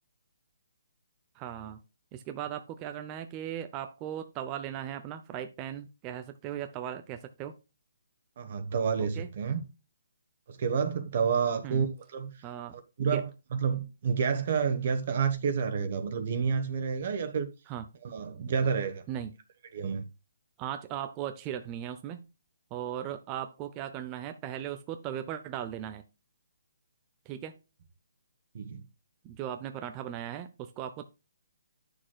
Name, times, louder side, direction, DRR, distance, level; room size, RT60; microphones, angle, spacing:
voice 1, 1.3-1.8 2.1-7.5 9.0-9.3 11.6-11.9 12.4-13.2 17.7-17.9 18.6-18.7 19.1-19.4 20.6-22.3 22.7-26.0 27.3-27.5 29.2-31.0, right 10 dB, 20° right, 0.5 m, -38 dB
voice 2, 8.4-9.6 10.5-11.9 12.1-12.3 13.0-17.5 18.0-19.0 19.7-20.1 28.5-28.8, right 6 dB, 45° right, 1.1 m, -29 dB
9.5 x 6.4 x 2.3 m
hypercardioid pair, 165°, 0 cm